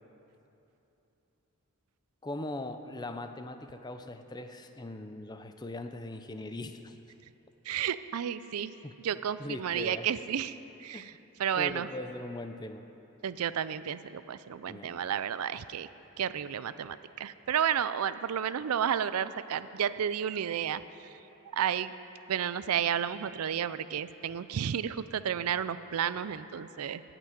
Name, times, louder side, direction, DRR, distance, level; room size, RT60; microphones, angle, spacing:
voice 1, 2.2-7.0 8.8-9.0 9.4-10.1 10.9-11.0 11.6-12.9 14.7-15.0, left 2 dB, 20° left, 8 dB, 0.5 m, -40 dB
voice 2, 7.7-8.7 9.0-11.1 11.4-11.9 13.2-15.9 16.2-20.8 21.5-21.9 22.3-27.0, right 8 dB, 90° right, 14 dB, 0.4 m, -32 dB
15.0 x 6.0 x 9.3 m, 3.0 s
head